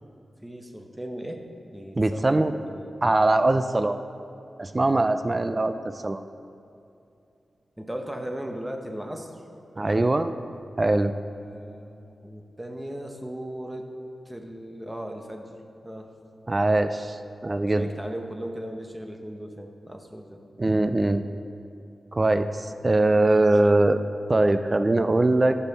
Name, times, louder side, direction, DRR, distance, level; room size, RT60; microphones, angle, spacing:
voice 1, 0.4-2.9 5.1-5.6 7.8-9.4 9.9-10.1 11.4-13.9 14.3-15.5 15.8-16.5 17.6-20.4, equal, 10° right, 3 dB, 0.9 m, -37 dB
voice 2, 2.0-2.5 3.0-4.0 4.6-6.2 9.8-10.3 10.8-11.1 16.5-17.9 20.6-21.2 22.1-24.0 24.3-25.6, right 2 dB, 25° right, 10 dB, 0.3 m, -22 dB
14.0 x 5.6 x 4.1 m, 2.6 s
wide cardioid pair, 110°, 0 cm